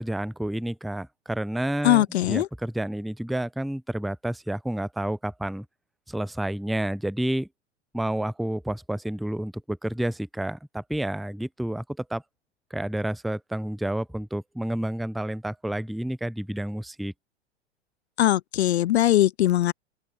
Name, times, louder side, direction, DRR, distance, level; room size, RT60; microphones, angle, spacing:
voice 1, 0.0-5.7 6.1-7.5 7.9-12.2 12.7-17.1, right 1 dB, ahead, 0.5 m, -30 dB
voice 2, 1.8-2.5 18.2-19.7, left 13 dB, 65° left, 0.6 m, -21 dB
figure-of-eight pair, 105°, 35 cm